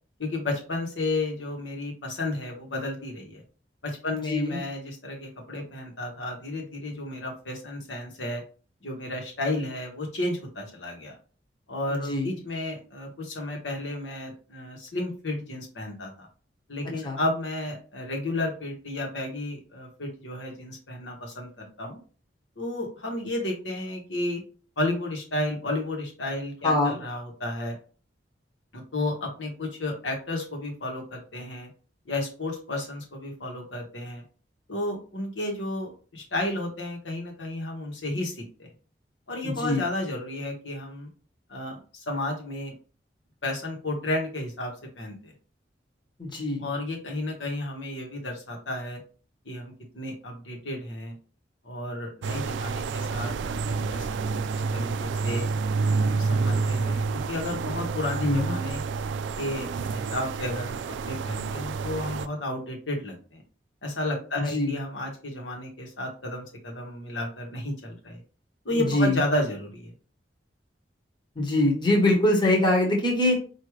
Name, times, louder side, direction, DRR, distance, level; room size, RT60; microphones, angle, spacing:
voice 1, 0.2-3.4 3.8-8.4 8.8-11.2 11.7-16.3 16.7-22.0 22.6-24.4 24.8-27.7 28.7-31.7 32.0-34.2 34.7-38.7 39.3-41.1 41.5-42.7 43.4-45.3 46.6-49.0 49.4-51.1 51.6-55.5 56.0-58.8 59.4-63.4 63.8-68.2 68.6-69.9, left 1 dB, 90° left, 1 dB, 1.3 m, -32 dB
voice 2, 4.1-4.6 12.1-12.3 17.0-17.2 26.6-27.0 39.4-39.8 46.2-46.6 58.2-58.5 64.5-64.7 68.7-69.2 71.4-73.4, left 1 dB, 25° left, -1 dB, 1.0 m, -23 dB
sound 1, 52.2-62.3, right 4 dB, 75° right, 0.3 m, -29 dB
4.8 x 2.7 x 3.1 m, 0.38 s
head